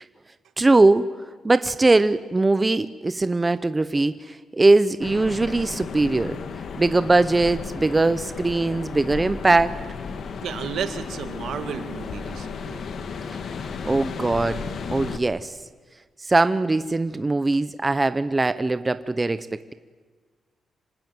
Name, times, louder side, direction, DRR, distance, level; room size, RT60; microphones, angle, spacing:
voice 1, 0.6-1.1 1.4-6.4 6.8-9.8 13.8-15.5 16.2-19.5, right 2 dB, 15° right, 12 dB, 0.7 m, -21 dB
sound 1, 5.0-15.2, left 5 dB, 55° left, 1.8 m, -34 dB
voice 2, 10.4-12.8, right 8 dB, 80° right, 8 dB, 2.1 m, -32 dB
26.0 x 19.0 x 9.4 m, 1.5 s
wide cardioid pair, 145°, 0 cm